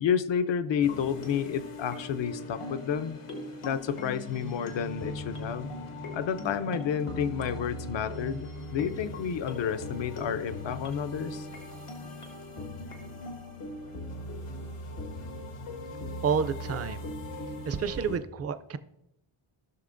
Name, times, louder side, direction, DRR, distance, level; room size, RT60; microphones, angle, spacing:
voice 1, 0.0-3.2 3.6-5.7 6.1-11.5, left 8 dB, 60° left, 12 dB, 0.6 m, -30 dB
sound 1, 0.8-18.2, left 1 dB, 85° left, 1.6 m, -39 dB
voice 2, 16.2-17.0 17.7-18.8, right 6 dB, 30° right, 12 dB, 0.4 m, -29 dB
16.0 x 6.2 x 2.6 m, 0.89 s
wide cardioid pair, 115°, 50 cm